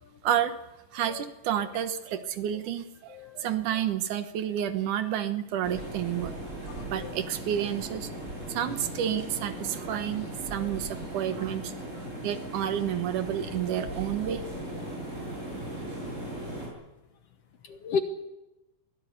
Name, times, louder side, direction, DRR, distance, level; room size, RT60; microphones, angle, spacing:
voice 1, 0.2-0.6 0.9-6.3 6.9-11.7 12.2-14.5, right 10 dB, 75° right, 10 dB, 2.6 m, -30 dB
voice 2, 3.1-3.5 6.7-7.1 9.9-10.0 10.5-10.8 11.3-11.4 11.9-12.3 14.8-15.2 17.6-18.0, left 5 dB, 60° left, 7 dB, 1.9 m, -36 dB
sound 1, 5.6-16.7, right 1 dB, 20° right, 8.1 m, -38 dB
23.0 x 17.0 x 8.5 m, 0.99 s
omnidirectional pair, 3.7 m